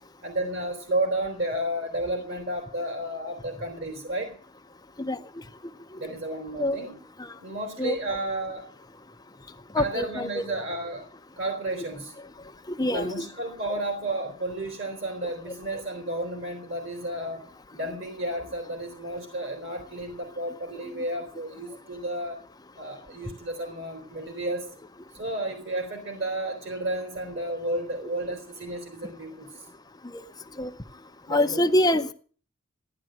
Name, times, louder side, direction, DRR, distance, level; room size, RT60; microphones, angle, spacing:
voice 1, 0.2-4.4 6.0-7.0 7.4-8.7 9.7-11.1 11.4-12.1 12.9-17.5 17.7-22.4 22.8-24.7 25.1-29.6 31.3-31.9, right 1 dB, 55° right, 4 dB, 3.6 m, -32 dB
voice 2, 9.7-10.4 12.7-13.3 30.1-30.2 30.6-30.7 31.3-32.1, left 1 dB, 20° left, 8 dB, 0.7 m, -25 dB
15.5 x 10.5 x 7.5 m, 0.43 s
head